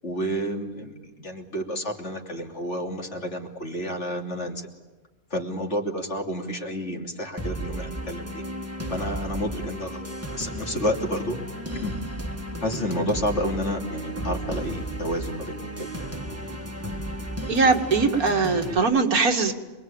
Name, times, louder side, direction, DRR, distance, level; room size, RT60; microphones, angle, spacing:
voice 1, 0.0-4.7 5.3-8.4 8.9-10.1 10.3-11.4 11.7-11.9 12.6-15.9, equal, 50° left, 2 dB, 3.3 m, -30 dB
sound 1, 7.4-18.8, equal, 10° right, 1.8 m, -34 dB
voice 2, 17.5-19.5, right 4 dB, 85° right, 4 dB, 2.5 m, -21 dB
27.0 x 22.0 x 8.8 m, 1.2 s
omnidirectional pair, 1.5 m